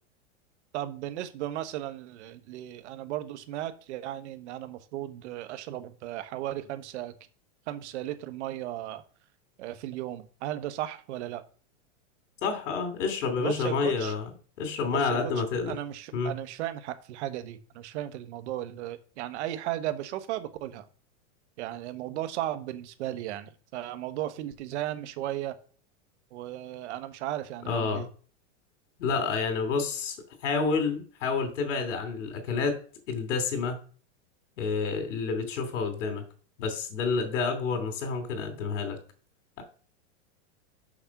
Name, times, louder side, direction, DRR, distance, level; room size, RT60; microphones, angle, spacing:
voice 1, 0.7-7.1 7.7-9.0 9.6-11.4 13.4-14.1 14.9-20.9 21.6-25.5 26.3-28.1, right 13 dB, 70° right, 10 dB, 1.3 m, -35 dB
voice 2, 12.4-14.3 14.6-15.8 16.1-16.4 27.6-28.1 29.0-30.2 30.4-32.8 33.1-33.8 34.6-36.2 36.6-39.0, left 5 dB, 85° left, 6 dB, 3.0 m, -29 dB
6.5 x 6.0 x 5.9 m, 0.42 s
supercardioid pair, 145°, 36 cm